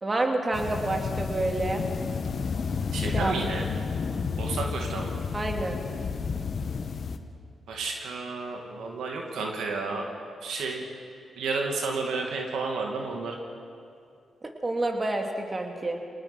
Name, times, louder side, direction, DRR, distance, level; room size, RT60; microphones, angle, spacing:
voice 1, 0.0-1.8 3.1-3.3 5.3-5.8 14.4-16.0, right 2 dB, 30° right, 2 dB, 2.8 m, -28 dB
sound 1, 0.5-7.2, left 5 dB, 60° left, 1.2 m, -31 dB
voice 2, 2.9-3.7 4.4-5.2 7.7-10.1 10.4-10.9 11.4-13.3, right 4 dB, 85° right, 1 dB, 2.4 m, -31 dB
24.5 x 19.0 x 6.1 m, 2.4 s
supercardioid pair, 55°, 0 cm